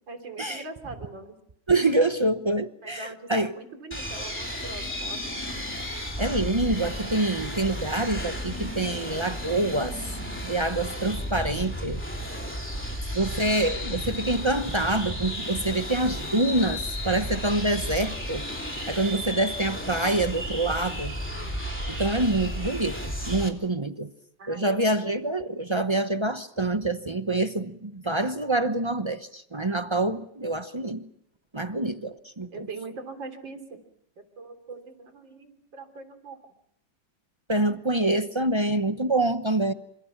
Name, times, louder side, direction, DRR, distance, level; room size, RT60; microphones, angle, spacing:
voice 1, 0.1-1.4 2.8-5.6 21.3-21.5 24.4-24.8 32.5-33.8 34.2-36.4, right 3 dB, 70° right, 4.1 m, -42 dB
voice 2, 1.7-3.5 6.2-10.1 10.4-12.0 13.1-18.4 18.9-21.1 21.9-24.1 24.5-31.1 31.5-32.7 37.5-39.7, right 2 dB, 35° right, 0.4 m, -26 dB
sound 1, 3.9-23.5, equal, 5° left, 3.2 m, -33 dB
28.5 x 26.0 x 6.0 m
omnidirectional pair, 2.1 m